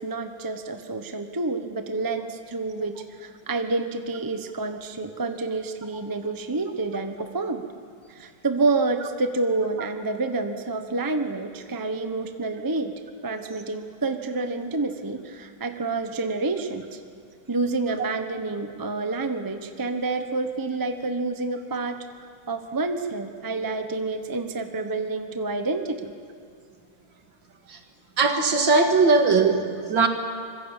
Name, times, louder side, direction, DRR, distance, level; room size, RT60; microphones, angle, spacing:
voice 1, 0.0-7.6 8.1-12.9 13.2-17.0 17.5-22.0 22.5-26.1, right 3 dB, 15° right, 7 dB, 0.8 m, -28 dB
voice 2, 28.2-30.1, right 4 dB, 65° right, 5 dB, 2.5 m, -19 dB
26.0 x 22.5 x 7.4 m, 2.3 s
omnidirectional pair, 2.2 m